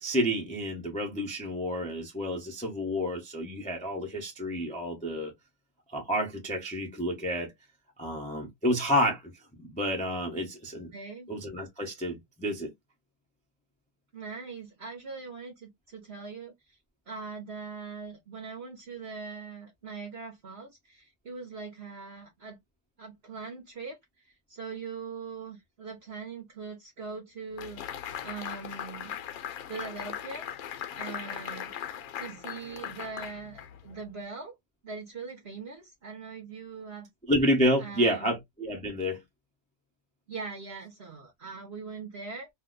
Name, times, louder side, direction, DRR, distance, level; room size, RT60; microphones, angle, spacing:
voice 1, 0.0-5.3 5.9-7.5 8.0-10.9 11.3-12.7 37.3-39.2, equal, 10° left, 0.4 m, -29 dB
voice 2, 10.9-11.3 14.1-16.8 17.1-22.6 23.0-29.1 29.7-30.5 31.0-31.9 32.2-34.6 34.8-37.1 37.8-38.3 40.3-42.5, right 5 dB, 55° right, 0.8 m, -41 dB
sound 1, 27.6-34.0, left 10 dB, 70° left, 1.0 m, -39 dB
2.8 x 2.1 x 3.8 m
omnidirectional pair, 1.7 m